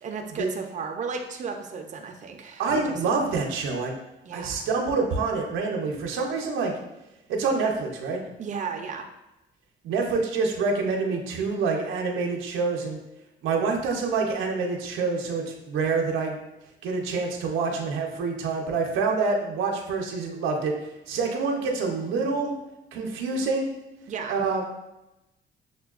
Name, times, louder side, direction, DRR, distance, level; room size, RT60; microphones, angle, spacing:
voice 1, 0.0-3.4 4.2-4.7 8.4-9.0 24.1-24.4, right 5 dB, 40° right, 3 dB, 0.5 m, -35 dB
voice 2, 2.6-4.0 4.3-6.7 7.3-8.2 9.8-13.0 13.4-16.4 16.8-20.7 21.1-22.5 22.9-23.7 24.3-24.6, right 4 dB, 90° right, 1 dB, 0.7 m, -26 dB
6.6 x 2.2 x 2.4 m, 0.94 s
cardioid pair, 90°, 20 cm